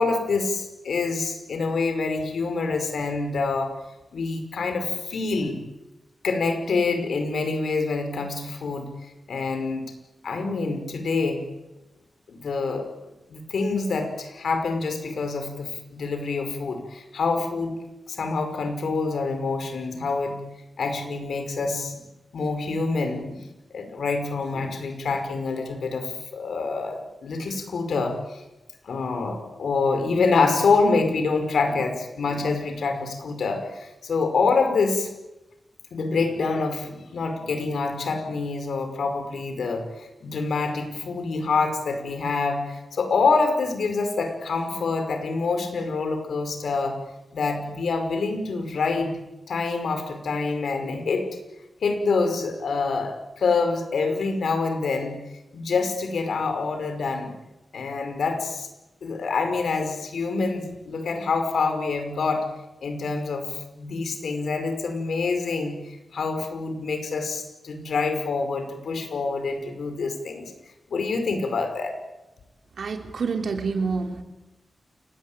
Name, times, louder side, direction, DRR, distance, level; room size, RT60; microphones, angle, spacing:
voice 1, 0.0-3.7 4.1-5.6 6.2-8.9 9.3-9.9 10.2-11.4 12.3-12.9 13.3-17.7 18.1-20.4 20.8-22.0 22.3-23.5 23.7-28.4 28.8-35.1 35.9-47.0 47.3-49.2 49.5-51.3 51.8-55.2 55.5-57.3 57.7-58.7 59.0-62.5 62.8-70.5 70.9-72.0, left 4 dB, 85° left, 7 dB, 5.4 m, -26 dB
voice 2, 72.8-74.2, right 4 dB, 75° right, 6 dB, 3.3 m, -27 dB
28.5 x 19.5 x 9.1 m, 0.98 s
wide cardioid pair, 125°, 0 cm